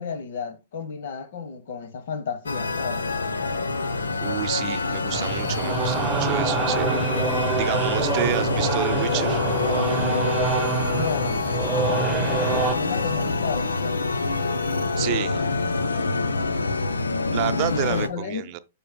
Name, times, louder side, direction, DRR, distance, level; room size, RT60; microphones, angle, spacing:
voice 1, 0.0-3.0 8.2-8.4 10.9-11.5 12.6-14.2 17.7-18.5, left 6 dB, 60° left, 1.1 m, -33 dB
sound 1, 2.5-18.1, left 3 dB, 75° left, 0.8 m, -26 dB
voice 2, 4.2-7.0 7.6-9.4 15.0-15.4 17.3-18.6, right 15 dB, 40° right, 0.6 m, -29 dB
sound 2, 5.1-12.8, right 4 dB, 15° right, 1.1 m, -26 dB
12.5 x 5.2 x 2.2 m
figure-of-eight pair, 110°, 0 cm